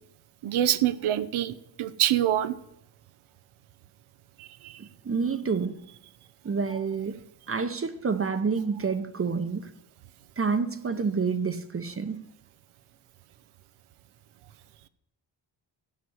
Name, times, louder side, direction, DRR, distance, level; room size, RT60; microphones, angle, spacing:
voice 1, 0.4-2.5 4.6-4.7, right 12 dB, 90° right, 0.8 m, -25 dB
voice 2, 4.8-5.9 6.4-7.2 7.5-9.7 10.4-12.2, right 5 dB, 30° right, 0.8 m, -28 dB
14.0 x 6.1 x 9.5 m
cardioid pair, 110°, 48 cm